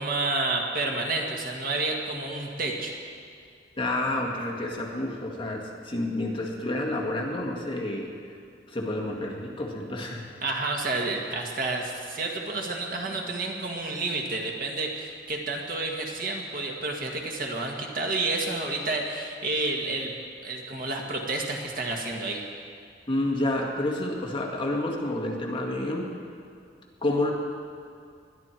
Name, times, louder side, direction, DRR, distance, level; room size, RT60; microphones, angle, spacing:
voice 1, 0.0-2.9 10.4-22.4, right 2 dB, 50° right, 1 dB, 1.8 m, -30 dB
voice 2, 3.8-8.4 8.7-10.4 23.1-26.1 27.0-27.3, left 1 dB, 30° left, -1 dB, 1.9 m, -29 dB
21.0 x 12.0 x 4.5 m, 2.3 s
head